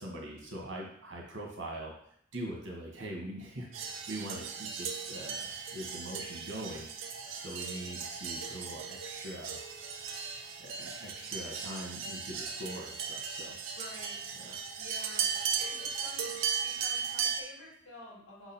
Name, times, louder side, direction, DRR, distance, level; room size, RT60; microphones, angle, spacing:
voice 1, 0.0-1.9 2.3-6.9 7.3-9.6 10.6-13.6 14.4-14.6, right 1 dB, 70° right, -1 dB, 1.6 m, -42 dB
sound 1, 3.7-17.4, right 6 dB, 85° right, 0.7 m, -37 dB
voice 2, 13.8-14.2 14.8-15.2 15.5-16.3 16.6-18.5, left 2 dB, 70° left, -4 dB, 2.4 m, -49 dB
6.1 x 3.9 x 4.4 m, 0.67 s
head